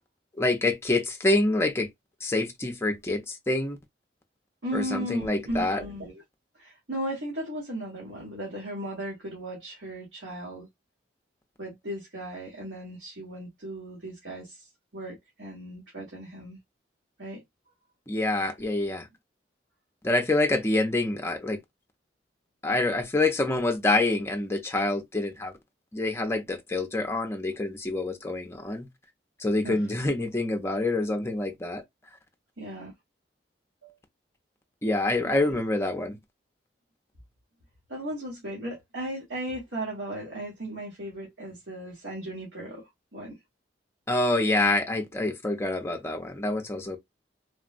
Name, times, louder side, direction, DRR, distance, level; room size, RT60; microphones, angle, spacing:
voice 1, 0.4-1.9 2.2-3.8 4.7-5.8 18.1-19.1 20.0-21.6 22.6-25.5 25.9-28.9 29.4-31.8 34.8-36.2 44.1-47.0, left 2 dB, 15° left, 0.5 m, -26 dB
voice 2, 4.6-6.1 6.5-10.7 11.6-16.6 17.2-17.4 29.6-29.8 32.6-32.9 33.8-34.0 35.2-35.6 37.9-43.4, right 1 dB, 80° right, 1.4 m, -36 dB
3.5 x 2.1 x 2.4 m
head